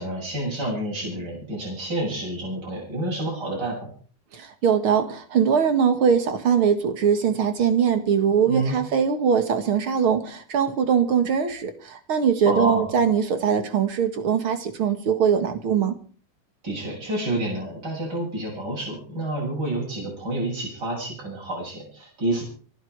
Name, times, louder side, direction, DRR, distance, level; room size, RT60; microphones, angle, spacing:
voice 1, 0.0-3.9 8.5-8.8 12.4-12.9 16.6-22.4, right 1 dB, 25° right, -3 dB, 8.3 m, -29 dB
voice 2, 4.3-15.9, right 7 dB, 45° right, 9 dB, 2.0 m, -21 dB
25.5 x 11.5 x 4.7 m, 0.42 s
omnidirectional pair, 4.3 m